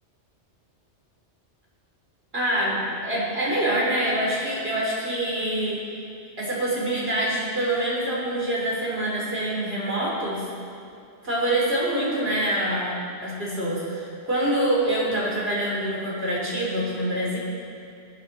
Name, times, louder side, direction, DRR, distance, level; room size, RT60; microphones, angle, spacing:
voice 1, 2.3-5.8 6.4-10.4 11.2-12.9 13.2-17.4, right 1 dB, 60° right, -5 dB, 3.8 m, -25 dB
22.5 x 8.6 x 4.3 m, 2.4 s
omnidirectional pair, 1.2 m